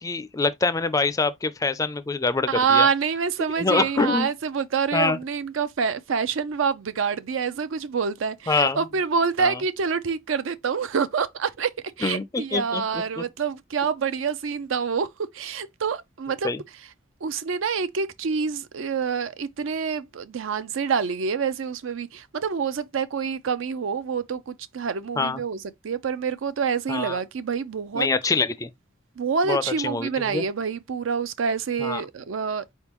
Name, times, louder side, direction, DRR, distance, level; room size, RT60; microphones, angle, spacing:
voice 1, 0.0-2.9 3.4-4.3 4.9-5.2 8.5-8.8 9.4-9.6 12.0-13.2 16.4-16.6 25.2-25.4 26.9-27.2 27.9-28.7 29.5-30.4 31.8-32.0, left 3 dB, 15° left, 0.3 m, -25 dB
voice 2, 2.5-11.7 12.0-15.1 15.3-16.5 17.2-28.1 29.2-32.7, right 6 dB, 80° right, 0.5 m, -26 dB
4.3 x 3.6 x 2.9 m
head